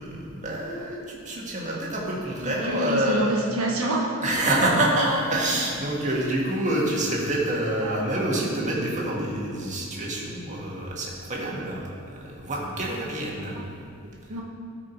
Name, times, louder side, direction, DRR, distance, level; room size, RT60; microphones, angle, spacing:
voice 1, 0.0-3.3 4.2-13.6 14.3-14.4, right 1 dB, 35° right, -3 dB, 1.7 m, -27 dB
voice 2, 2.4-4.4 7.8-8.0 13.6-13.7 14.3-14.4, right 1 dB, 80° right, -1 dB, 1.3 m, -27 dB
13.0 x 4.9 x 4.5 m, 2.4 s
head